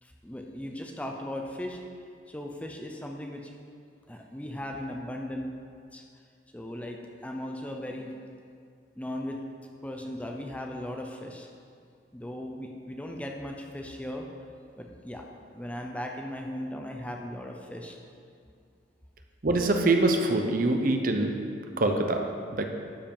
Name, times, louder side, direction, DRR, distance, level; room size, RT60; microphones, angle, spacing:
voice 1, 0.0-1.8 2.3-3.5 4.1-5.5 5.9-6.0 6.5-8.2 9.0-9.4 9.8-11.5 12.1-14.3 14.8-18.0, left 1 dB, 5° left, 1 dB, 0.5 m, -37 dB
voice 2, 19.4-21.4 21.8-22.6, right 2 dB, 45° right, 4 dB, 0.7 m, -24 dB
12.0 x 5.0 x 5.4 m, 2.3 s
head